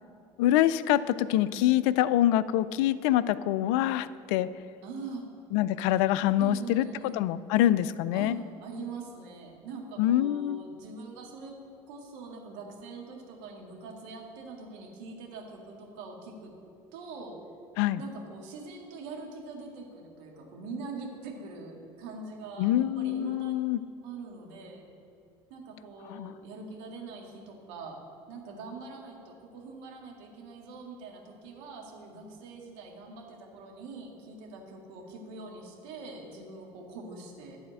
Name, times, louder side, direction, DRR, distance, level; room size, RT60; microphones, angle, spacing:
voice 1, 0.4-4.5 5.5-6.9 7.1-8.4 10.0-10.6 17.8-18.0 22.6-23.8 26.1-26.3, left 13 dB, 70° left, 16 dB, 0.4 m, -25 dB
voice 2, 4.8-5.3 6.4-7.2 8.1-11.5 11.9-16.5 16.9-17.3 18.0-23.6 24.0-24.8 25.5-28.0 28.3-37.6, right 3 dB, 75° right, 0 dB, 2.0 m, -43 dB
11.5 x 4.2 x 7.7 m, 2.5 s
hypercardioid pair, 70°, 16 cm